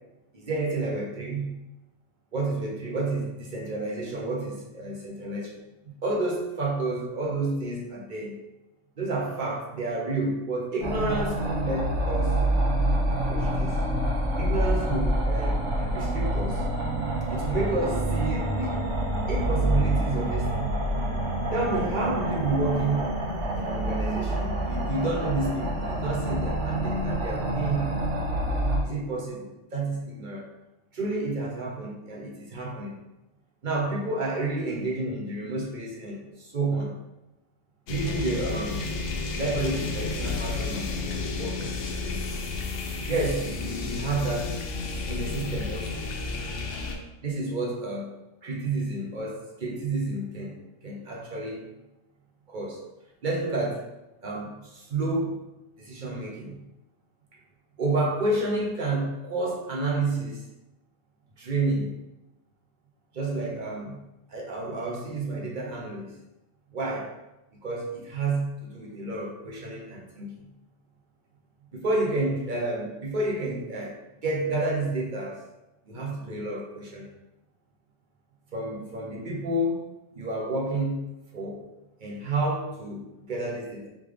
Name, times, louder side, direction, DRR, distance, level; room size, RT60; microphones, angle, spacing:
voice 1, 0.3-1.6 2.3-5.6 5.8-8.4 9.0-12.4 13.1-13.8 14.4-16.6 17.3-18.8 19.3-20.8 21.5-23.1 23.5-28.0 28.8-30.5 30.9-33.0 33.6-37.0 37.9-38.8 39.3-40.9 41.3-42.2 43.1-44.6 45.1-46.1 47.2-48.1 48.4-51.7 52.5-52.9 53.2-53.8 54.2-55.4 55.8-56.6 57.8-60.4 61.4-61.9 63.1-64.0 64.3-66.1 66.7-67.1 67.6-70.3 71.7-74.0 74.2-75.4 75.9-77.1 78.5-79.9 80.2-81.6 82.0-83.9, right 2 dB, 45° right, -2 dB, 0.8 m, -30 dB
sound 1, 10.8-28.8, right 1 dB, 70° right, 1.3 m, -27 dB
sound 2, 37.9-47.0, left 3 dB, 75° left, 0.9 m, -32 dB
3.7 x 3.3 x 3.3 m, 0.96 s
omnidirectional pair, 1.3 m